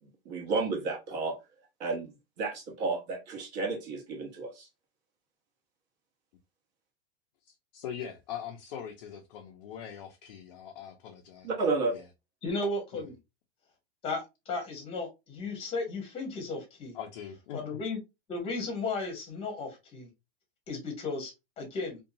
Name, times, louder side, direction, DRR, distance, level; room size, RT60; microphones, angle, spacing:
voice 1, 0.2-1.4 1.8-2.1 2.4-4.7 11.4-11.9, right 3 dB, 40° right, 1.1 m, -31 dB
voice 2, 7.4-11.5 11.9-12.0 12.9-13.1 16.9-17.6, left 9 dB, 45° left, 0.5 m, -42 dB
voice 3, 12.4-13.2 14.0-17.0 17.5-18.0 18.3-20.1 20.7-22.0, left 3 dB, 15° left, 0.9 m, -35 dB
2.7 x 2.2 x 2.6 m
supercardioid pair, 160°, 32 cm